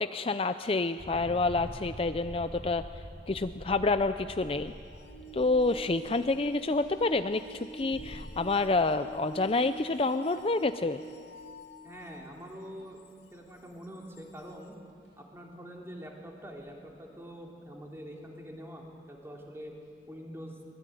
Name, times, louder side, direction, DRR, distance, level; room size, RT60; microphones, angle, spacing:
voice 1, 0.0-2.8 3.3-4.7 5.3-11.0, left 3 dB, 30° left, 10 dB, 0.5 m, -28 dB
sound 1, 1.0-11.5 12.0-12.4 12.9-13.1 13.5-13.6 13.9-14.5 15.0-15.1 16.6-16.8, equal, 85° right, 7.9 m, -47 dB
sound 2, 4.7-12.4 13.1-13.2 14.2-14.3, right 1 dB, 90° left, 2.4 m, -46 dB
voice 2, 11.8-13.0 13.3-14.7 15.2-19.7 20.1-20.6, equal, 15° right, -1 dB, 3.5 m, -45 dB
24.5 x 21.0 x 9.2 m, 2.4 s
head